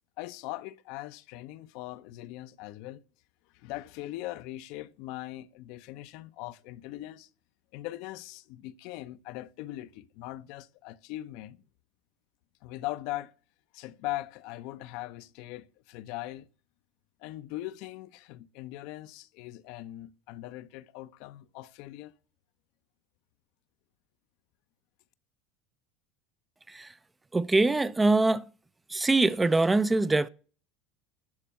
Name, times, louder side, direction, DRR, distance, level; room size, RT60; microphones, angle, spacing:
voice 1, 0.2-3.0 3.5-7.3 7.7-11.6 12.6-13.3 13.7-16.5 17.2-22.1, left 16 dB, 65° left, 0.6 m, -40 dB
voice 2, 27.3-28.5 28.9-30.3, right 2 dB, 15° right, 0.5 m, -23 dB
12.0 x 4.2 x 7.4 m
hypercardioid pair, 80°, 0 cm